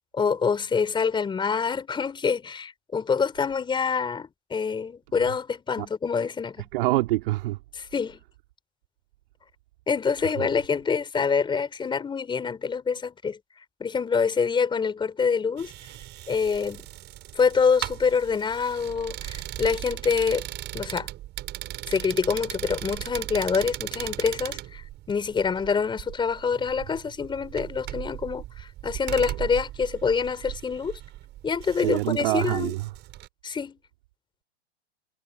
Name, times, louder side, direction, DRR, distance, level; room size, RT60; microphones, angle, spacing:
voice 1, 0.1-6.7 7.8-8.2 9.9-13.4 13.8-15.7 16.3-16.8 17.3-20.4 20.7-21.1 21.9-31.0 31.4-32.7 33.4-33.8, left 5 dB, 15° left, 4.7 m, -26 dB
voice 2, 6.7-7.6 10.2-10.5 31.8-32.9, right 18 dB, 55° right, 4.4 m, -26 dB
sound 1, 15.6-33.3, right 15 dB, 30° right, 6.4 m, -38 dB
hypercardioid pair, 125°, 33 cm